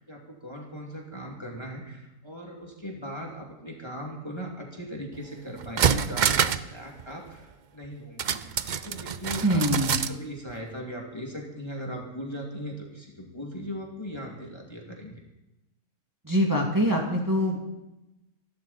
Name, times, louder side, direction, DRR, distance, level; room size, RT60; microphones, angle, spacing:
voice 1, 0.0-9.7 10.1-15.2, equal, 15° left, -1 dB, 2.5 m, -39 dB
sound 1, 5.2-5.3 5.6-6.7 7.0-7.1 8.2-10.2 10.5-10.6, right 7 dB, 70° right, 0.4 m, -26 dB
voice 2, 9.4-10.0 16.2-17.7, equal, 10° right, -1 dB, 2.3 m, -24 dB
26.5 x 12.0 x 4.2 m, 0.95 s
omnidirectional pair, 1.6 m